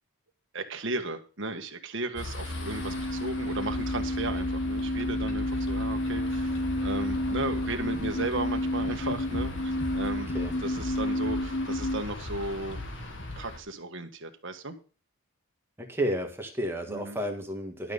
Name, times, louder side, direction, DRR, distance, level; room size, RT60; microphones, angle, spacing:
voice 1, 0.5-10.3 10.6-12.8 13.4-14.7 16.9-17.2, right 2 dB, 55° right, 6 dB, 1.6 m, -35 dB
sound 1, 2.2-13.6, left 2 dB, 55° left, 2.2 m, -37 dB
sound 2, 2.4-12.0, left 1 dB, 40° left, 0.5 m, -31 dB
voice 2, 15.8-17.9, right 1 dB, 10° right, 3 dB, 1.7 m, -31 dB
12.0 x 6.6 x 5.4 m, 0.37 s
head